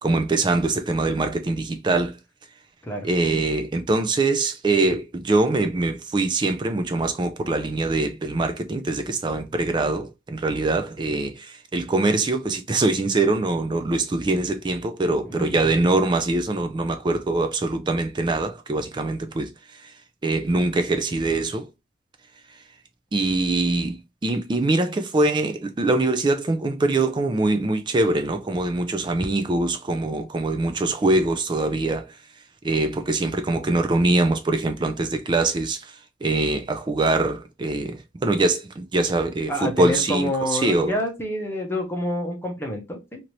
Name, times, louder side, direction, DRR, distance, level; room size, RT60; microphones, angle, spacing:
voice 1, 0.0-2.2 3.0-19.5 20.2-21.7 23.1-24.0 24.2-32.0 32.6-35.8 36.2-40.9, right 2 dB, 25° right, 0.4 m, -23 dB
voice 2, 15.2-15.7 39.5-43.2, equal, 15° left, 0.7 m, -28 dB
2.9 x 2.6 x 3.0 m
head